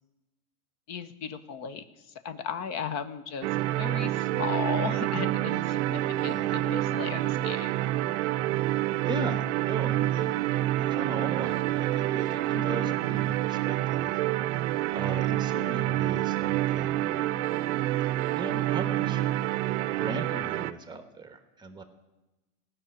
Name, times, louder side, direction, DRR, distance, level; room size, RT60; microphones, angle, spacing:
voice 1, 0.9-3.5 3.8-7.7 12.5-12.9, left 7 dB, 35° left, 13 dB, 1.0 m, -36 dB
sound 1, 3.4-20.7, right 15 dB, 55° right, 0.6 m, -28 dB
voice 2, 6.1-6.5 8.7-10.4 10.7-14.1 14.9-17.2 18.3-19.2 20.0-21.8, right 2 dB, 10° right, 8 dB, 1.2 m, -38 dB
15.5 x 6.3 x 8.9 m, 1.0 s
hypercardioid pair, 120°, 44 cm